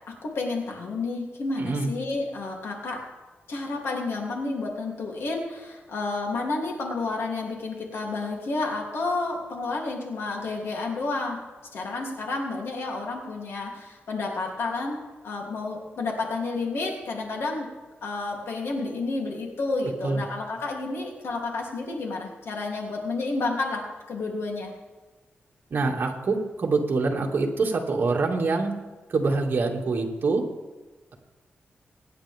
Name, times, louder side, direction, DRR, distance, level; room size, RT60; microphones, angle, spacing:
voice 1, 0.2-3.0 3.5-11.4 11.7-17.7 18.0-24.7, left 3 dB, 85° left, -1 dB, 3.1 m, -30 dB
voice 2, 1.6-1.9 20.0-20.2 25.7-28.8 29.1-30.4, right 3 dB, 55° right, 0 dB, 2.3 m, -25 dB
23.5 x 10.0 x 3.6 m, 1.3 s
wide cardioid pair, 150°, 4 cm